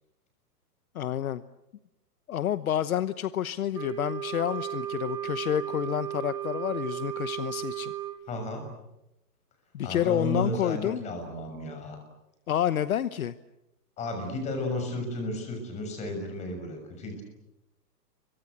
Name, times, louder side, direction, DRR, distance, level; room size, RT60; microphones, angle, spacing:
voice 1, 0.9-1.4 2.3-7.9 9.7-11.0 12.5-13.3, left 10 dB, 60° left, 14 dB, 1.1 m, -29 dB
Wind instrument woodwind instrument, 3.7-8.2, right 11 dB, 10° right, 1.1 m, -35 dB
voice 2, 8.3-8.6 9.8-12.0 14.0-17.2, left 1 dB, 15° left, 5 dB, 6.4 m, -33 dB
29.5 x 24.0 x 8.2 m, 0.90 s
hypercardioid pair, 170°, 49 cm